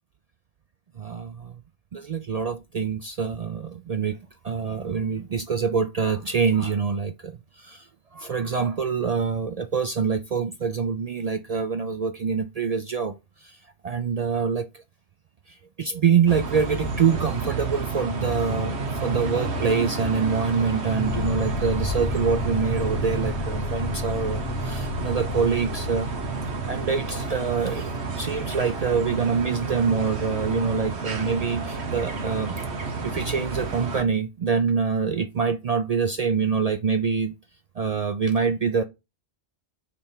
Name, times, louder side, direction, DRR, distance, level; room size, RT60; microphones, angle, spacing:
voice 1, 1.0-1.5 1.9-4.2 4.4-13.1 13.4-13.6 13.8-14.8 15.5-18.7 19.0-26.1 26.7-32.6 33.0-37.3 37.8-38.8, right 6 dB, 55° right, 0.4 m, -25 dB
sound 1, 16.3-34.0, right 4 dB, 90° right, 1.4 m, -30 dB
sound 2, 20.8-29.9, left 4 dB, 85° left, 1.2 m, -33 dB
5.0 x 4.4 x 5.5 m
omnidirectional pair, 1.1 m